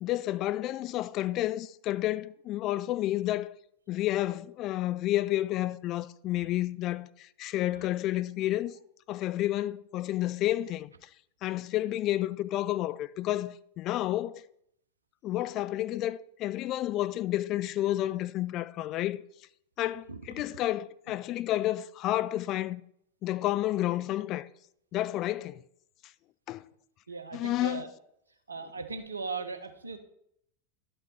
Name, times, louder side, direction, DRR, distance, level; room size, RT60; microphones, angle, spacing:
voice 1, 0.0-3.5 3.9-8.8 9.1-11.1 11.4-14.4 15.2-19.2 19.8-22.8 23.2-24.5 24.9-25.6 26.5-26.6 27.3-27.8, left 14 dB, 35° left, 0.3 m, -30 dB
voice 2, 27.1-27.9 28.5-30.0, right 4 dB, 75° right, 0.9 m, -38 dB
11.5 x 5.5 x 4.2 m
figure-of-eight pair, 90°, 0 cm